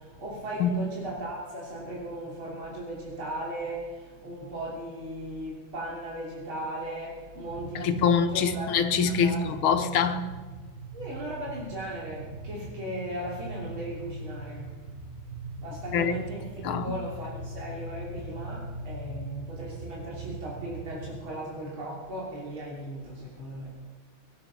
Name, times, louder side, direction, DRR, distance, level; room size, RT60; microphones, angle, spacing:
voice 1, 0.2-3.8 4.2-8.7 9.0-9.7 10.9-14.7 15.6-16.4 16.8-23.7, right 1 dB, 80° right, -5 dB, 3.9 m, -37 dB
sound 1, 7.4-21.2, right 2 dB, 35° right, 1.7 m, -41 dB
voice 2, 7.8-10.3 15.9-16.3 16.6-17.0, left 6 dB, 85° left, 8 dB, 1.9 m, -25 dB
22.5 x 8.8 x 5.8 m, 1.4 s
omnidirectional pair, 2.2 m